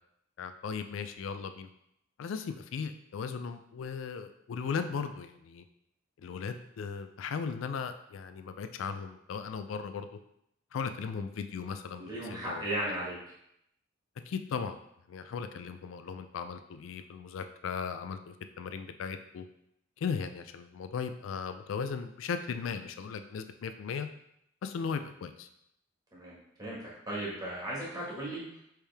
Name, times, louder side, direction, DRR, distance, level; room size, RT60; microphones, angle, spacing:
voice 1, 0.4-1.7 2.2-5.6 6.2-10.2 10.7-12.6 12.9-13.0 14.3-14.8 15.1-19.4 20.0-24.1 24.6-25.5, left 6 dB, 85° left, 9 dB, 0.3 m, -37 dB
voice 2, 12.0-13.2 26.1-28.6, right 1 dB, 20° right, -6 dB, 1.5 m, -36 dB
4.5 x 3.3 x 3.4 m, 0.77 s
head